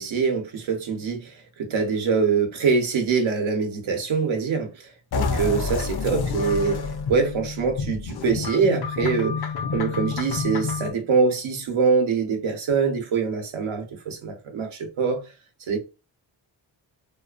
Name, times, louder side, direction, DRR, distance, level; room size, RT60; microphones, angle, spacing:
voice 1, 0.0-6.8 7.1-15.2 15.7-15.8, right 5 dB, 80° right, 0.9 m, -24 dB
sound 1, 5.1-10.9, left 5 dB, 55° left, 0.6 m, -28 dB
2.5 x 2.4 x 2.4 m
cardioid pair, 70°, 47 cm